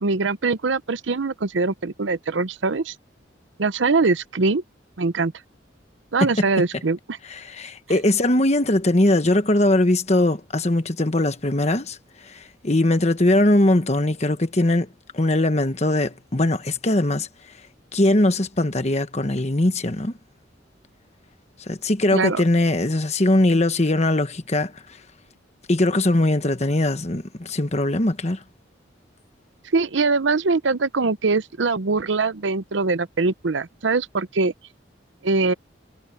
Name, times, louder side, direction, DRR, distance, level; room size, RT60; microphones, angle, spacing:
voice 1, 0.0-2.9 3.6-4.6 5.0-5.3 6.1-7.2 22.1-22.4 29.7-34.5 35.2-35.5, right 3 dB, 75° right, 0.7 m, -22 dB
voice 2, 7.3-12.0 12.3-14.9 15.1-17.3 17.9-20.1 21.7-24.7 25.7-28.4, left 1 dB, 35° left, 1.2 m, -20 dB
head